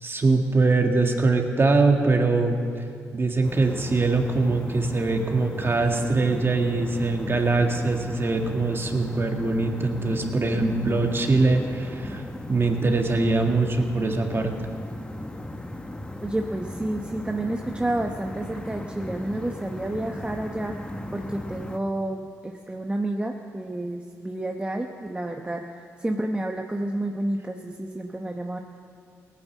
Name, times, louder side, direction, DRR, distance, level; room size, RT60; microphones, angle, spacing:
voice 1, 0.0-2.6 3.1-12.2 12.5-14.5, right 3 dB, 35° right, 3 dB, 2.0 m, -22 dB
sound 1, 3.4-21.8, left 1 dB, 15° left, 1.0 m, -37 dB
voice 2, 16.2-20.8 21.1-28.6, right 1 dB, 15° right, 3 dB, 1.0 m, -30 dB
18.0 x 9.4 x 7.3 m, 2.3 s
supercardioid pair, 50°, 7 cm